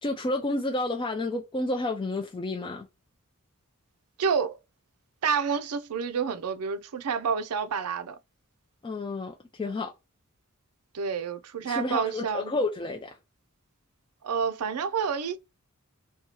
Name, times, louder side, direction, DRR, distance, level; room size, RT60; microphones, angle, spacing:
voice 1, 0.0-2.9 8.8-9.9 11.6-13.2, left 2 dB, 20° left, 0.3 m, -30 dB
voice 2, 4.2-4.6 5.2-8.2 10.9-12.5 14.2-15.4, right 6 dB, 80° right, 0.4 m, -29 dB
2.7 x 2.3 x 2.8 m
head